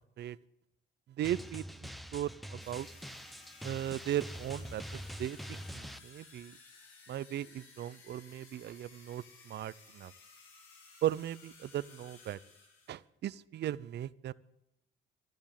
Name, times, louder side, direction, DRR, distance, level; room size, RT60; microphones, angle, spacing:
Drum, 1.2-6.0, equal, ahead, 0.7 m, -45 dB
voice 1, 1.2-2.9 3.6-6.6 7.1-10.1 11.0-12.4 12.9-14.3, right 12 dB, 55° right, 18 dB, 0.6 m, -37 dB
sound 1, 2.6-13.0, left 4 dB, 80° left, 4.9 m, -57 dB
12.5 x 10.5 x 10.0 m, 0.87 s
cardioid pair, 120°, 21 cm